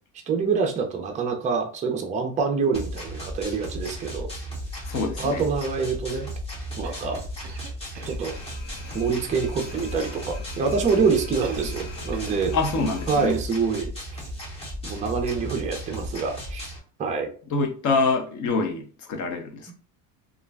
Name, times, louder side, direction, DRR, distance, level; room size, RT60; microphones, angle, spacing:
voice 1, 0.3-4.3 5.2-6.3 6.8-7.2 8.0-8.3 8.9-12.5 13.1-13.9 14.8-16.7 17.0-17.3, right 5 dB, 20° right, 0.4 m, -26 dB
sound 1, 2.7-16.8, equal, 15° left, 0.8 m, -35 dB
voice 2, 4.9-5.5 12.5-13.4 17.5-19.7, left 3 dB, 45° left, 0.7 m, -25 dB
Cough, 6.8-8.4 11.4-11.9 12.1-12.5, right 6 dB, 45° right, 0.8 m, -40 dB
sound 2, 8.2-13.3, left 3 dB, 75° left, 1.3 m, -41 dB
2.4 x 2.1 x 3.3 m
cardioid pair, 135°, 41 cm